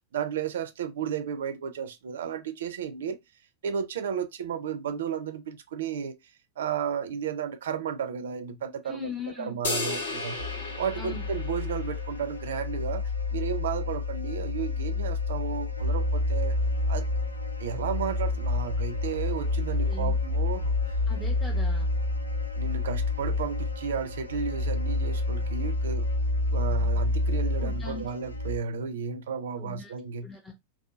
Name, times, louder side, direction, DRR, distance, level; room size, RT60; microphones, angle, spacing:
voice 1, 0.1-3.2 3.6-6.2 6.6-9.1 9.4-10.4 10.8-13.0 13.3-16.5 16.9-17.1 17.6-20.9 22.5-26.1 26.5-30.3, right 7 dB, 60° right, 0.3 m, -33 dB
voice 2, 8.8-9.6 11.0-11.2 19.9-20.1 21.1-21.9 27.6-28.1 29.6-29.9 30.2-30.5, left 5 dB, 10° left, 0.5 m, -39 dB
sound 1, 9.6-12.2, left 3 dB, 65° left, 0.7 m, -34 dB
sound 2, 10.4-28.6, left 2 dB, 85° left, 0.4 m, -29 dB
2.7 x 2.3 x 2.3 m
figure-of-eight pair, 90°, 0 cm